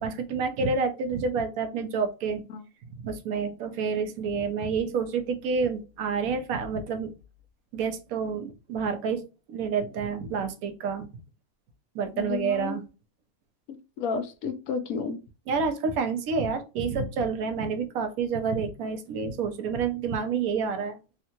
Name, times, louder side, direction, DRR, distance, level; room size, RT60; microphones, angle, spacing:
voice 1, 0.0-2.4 3.0-7.1 7.7-9.2 9.5-11.1 11.9-12.8 15.5-21.0, right 5 dB, 80° right, 8 dB, 1.0 m, -28 dB
voice 2, 12.2-12.8 13.7-15.2, left 5 dB, 75° left, 7 dB, 1.0 m, -32 dB
3.6 x 2.1 x 2.7 m, 0.31 s
omnidirectional pair, 1.5 m